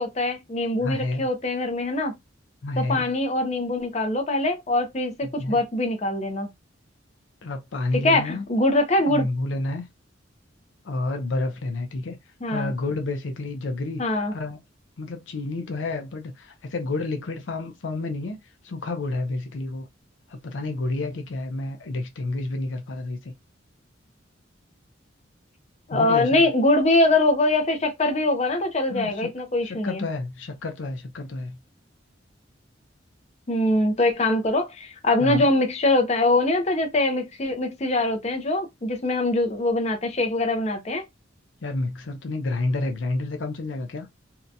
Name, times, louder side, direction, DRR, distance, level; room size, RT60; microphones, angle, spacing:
voice 1, 0.0-2.1 2.8-6.5 8.0-9.3 12.4-12.7 14.0-14.3 25.9-30.0 33.5-41.0, left 2 dB, 35° left, 0.6 m, -23 dB
voice 2, 0.8-1.3 2.6-3.0 5.4-5.6 7.4-8.4 9.1-9.9 10.8-12.2 12.5-14.6 15.0-18.4 18.6-19.9 20.3-23.3 25.9-26.5 28.9-29.3 29.7-31.6 35.2-35.5 41.6-44.1, left 2 dB, 80° left, 0.5 m, -30 dB
2.7 x 2.2 x 2.6 m
head